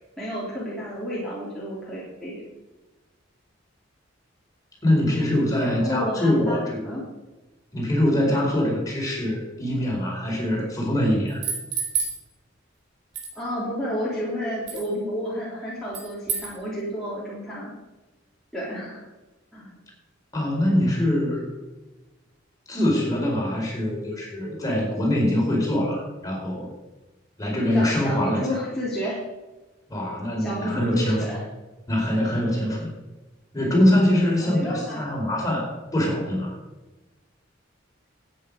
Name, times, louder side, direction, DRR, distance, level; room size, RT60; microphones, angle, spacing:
voice 1, 0.2-2.4 5.6-7.1 13.3-17.7 18.5-19.0 19.5-19.7 27.7-29.2 30.4-31.4 34.4-35.0, equal, 5° left, -9 dB, 3.4 m, -31 dB
voice 2, 4.8-6.9 7.7-11.4 20.3-21.5 22.7-26.7 27.4-28.6 29.9-31.2 31.9-32.9 33.5-36.6, left 1 dB, 20° left, -3 dB, 4.4 m, -23 dB
sound 1, 11.3-12.2 13.1-13.3 14.7-14.9 15.9-16.5, right 6 dB, 60° right, 3.7 m, -28 dB
13.0 x 9.2 x 5.3 m, 1.1 s
head